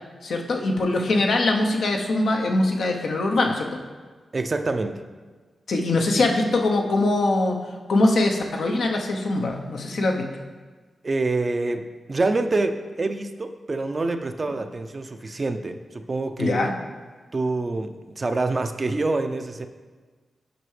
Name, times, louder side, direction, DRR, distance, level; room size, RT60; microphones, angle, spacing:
voice 1, 0.2-3.7 5.7-7.6 7.9-10.3 16.4-16.7, left 2 dB, 75° left, 2 dB, 0.7 m, -22 dB
voice 2, 4.3-5.0 11.0-16.7 17.3-19.7, right 3 dB, 45° right, 7 dB, 0.5 m, -26 dB
7.9 x 5.4 x 3.2 m, 1.4 s
cardioid pair, 45°, 0 cm